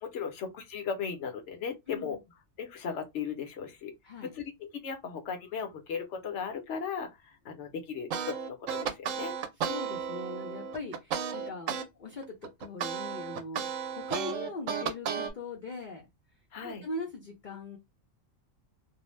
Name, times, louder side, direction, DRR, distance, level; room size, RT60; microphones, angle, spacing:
voice 1, 0.0-2.2 2.6-3.9 4.2-9.4 16.5-16.8, left 6 dB, 65° left, 1.0 m, -37 dB
voice 2, 1.9-2.2 4.0-4.3 9.6-16.0 16.6-17.8, left 2 dB, 50° left, 0.7 m, -41 dB
sound 1, 8.1-11.9 12.2-15.3, right 7 dB, 80° right, 1.0 m, -33 dB
2.6 x 2.1 x 3.1 m
omnidirectional pair, 1.4 m